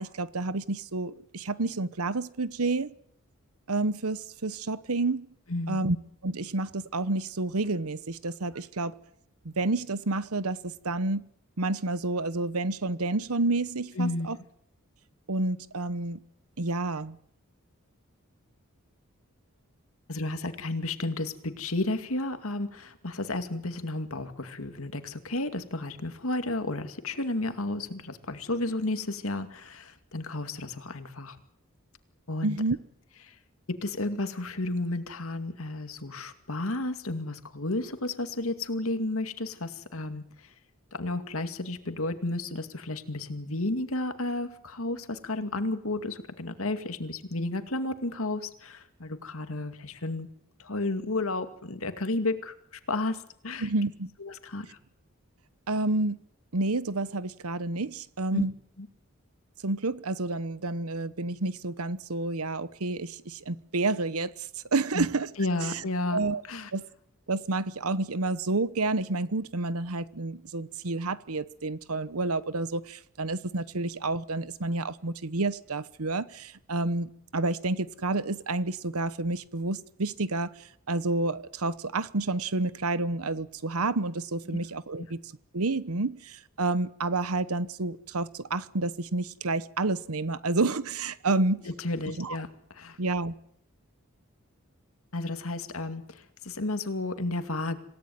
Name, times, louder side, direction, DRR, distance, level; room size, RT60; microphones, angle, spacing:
voice 1, 0.0-2.9 3.7-5.3 5.7-6.0 6.2-9.0 9.4-11.3 11.6-14.4 15.3-16.2 16.6-17.2 32.4-32.8 53.6-54.1 55.7-56.2 56.5-58.5 59.6-65.3 65.6-65.8 66.1-66.4 66.7-66.9 67.3-85.2 85.5-91.6 92.2-92.4 93.0-93.3, right 2 dB, 85° right, 1.1 m, -29 dB
voice 2, 5.5-5.9 14.0-14.3 20.1-31.4 32.3-32.6 33.2-33.3 33.7-40.5 40.9-50.3 50.6-52.5 52.9-53.7 54.2-54.8 58.3-58.5 58.8-58.9 64.9-65.1 65.4-66.2 66.5-66.7 84.5-84.6 91.6-92.5 92.7-93.0 95.1-97.8, left 2 dB, 75° left, 2.3 m, -32 dB
26.5 x 17.5 x 9.5 m
head